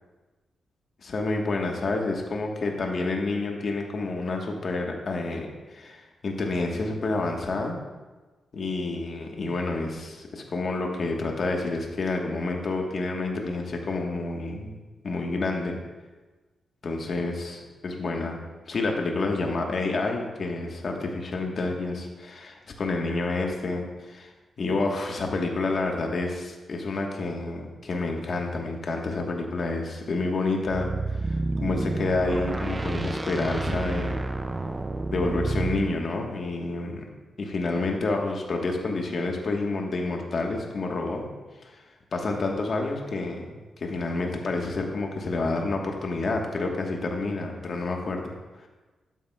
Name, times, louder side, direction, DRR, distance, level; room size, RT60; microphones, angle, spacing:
voice 1, 1.0-7.8 8.5-14.8 15.0-15.8 16.8-24.3 24.6-34.3 35.1-37.0 37.4-41.2 41.6-41.8 42.1-43.5 43.8-48.3, left 3 dB, 45° left, 1 dB, 1.2 m, -29 dB
sound 1, 30.7-35.9, right 2 dB, 15° right, 0.4 m, -29 dB
12.0 x 9.3 x 2.2 m, 1.2 s
wide cardioid pair, 160°, 0 cm